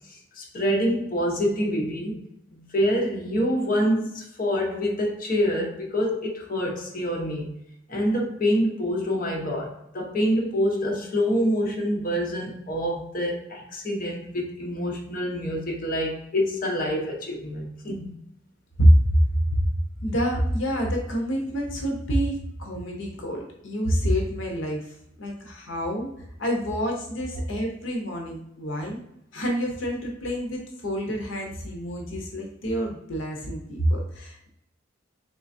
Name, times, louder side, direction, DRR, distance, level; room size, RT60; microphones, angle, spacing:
voice 1, 0.1-2.2 2.7-7.5 7.9-18.1, equal, 45° left, 0.8 m, -26 dB
voice 2, 18.8-19.6 20.0-26.1 26.4-29.0 29.3-34.5, equal, 75° left, 0.7 m, -26 dB
3.7 x 3.2 x 2.6 m
head